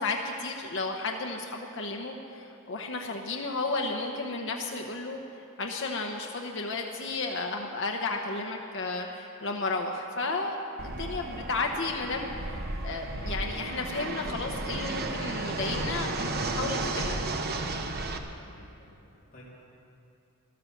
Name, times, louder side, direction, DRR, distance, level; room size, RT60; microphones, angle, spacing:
voice 1, 0.0-10.6 10.8-17.2, left 3 dB, 55° left, 1 dB, 0.9 m, -33 dB
Fixed-wing aircraft airplane, 10.8-18.2, right 2 dB, 45° right, 0.9 m, -33 dB
voice 2, 18.4-19.4, left 1 dB, 40° left, -9 dB, 3.1 m, -55 dB
13.5 x 12.0 x 7.2 m, 2.7 s
head